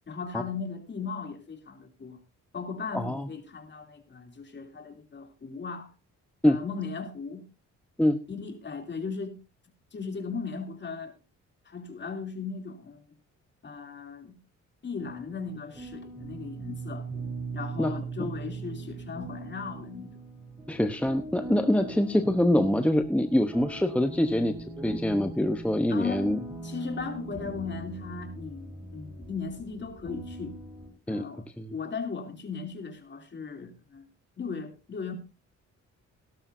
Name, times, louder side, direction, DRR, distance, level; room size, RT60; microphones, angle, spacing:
voice 1, 0.1-2.2 2.5-5.9 6.4-7.4 8.3-9.3 9.9-11.1 11.6-13.1 13.6-14.4 14.8-17.1 17.5-20.1 25.9-26.3 26.6-30.5 31.1-34.1 34.4-35.1, left 5 dB, 40° left, 3.0 m, -37 dB
voice 2, 2.9-3.3 6.4-6.6 8.0-8.2 17.8-17.9 18.2-18.3 20.7-24.5 24.8-26.4 31.1-31.7, left 1 dB, 5° left, 0.9 m, -25 dB
sound 1, 15.0-30.9, right 2 dB, 15° right, 4.9 m, -40 dB
17.0 x 12.5 x 2.7 m
cardioid pair, 95°, 29 cm